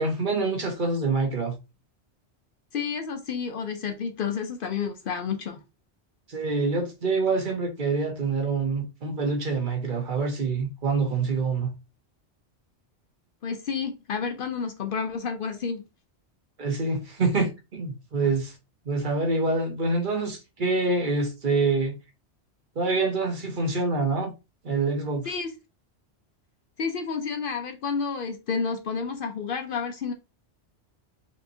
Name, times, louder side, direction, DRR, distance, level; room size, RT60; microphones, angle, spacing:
voice 1, 0.0-1.6 6.3-11.7 16.6-18.5 18.9-22.0 22.8-24.3 24.6-25.3, right 3 dB, 50° right, 1.0 m, -26 dB
voice 2, 2.7-5.6 13.4-15.8 25.3-25.5 26.8-30.1, left 5 dB, 60° left, 0.7 m, -30 dB
4.5 x 2.9 x 2.6 m
omnidirectional pair, 1.2 m